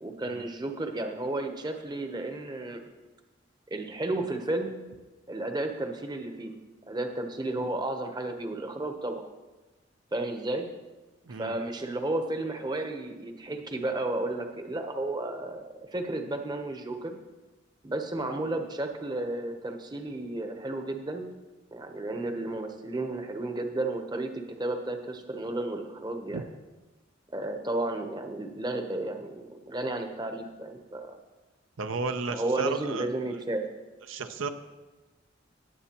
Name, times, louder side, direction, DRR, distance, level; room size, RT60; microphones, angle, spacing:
voice 1, 0.0-2.8 3.7-4.7 5.3-6.5 6.9-9.2 10.1-10.7 11.3-15.6 15.9-17.2 17.8-21.3 21.7-24.3 24.6-26.4 27.3-31.1 32.3-33.7, right 2 dB, 20° right, 5 dB, 0.8 m, -32 dB
voice 2, 31.8-33.1 34.1-34.5, right 4 dB, 75° right, 8 dB, 0.6 m, -33 dB
18.5 x 8.0 x 2.9 m, 1.1 s
head